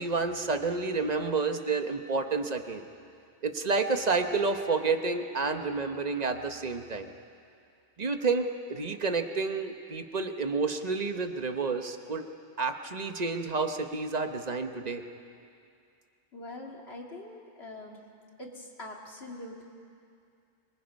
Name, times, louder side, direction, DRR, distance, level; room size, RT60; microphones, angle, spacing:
voice 1, 0.0-2.8 3.4-7.1 8.0-12.2 12.6-15.0, right 4 dB, 40° right, 6 dB, 1.2 m, -30 dB
voice 2, 16.3-18.0 18.4-19.6, left 2 dB, 75° left, 0 dB, 2.6 m, -43 dB
25.5 x 23.5 x 5.4 m, 2.4 s
omnidirectional pair, 1.1 m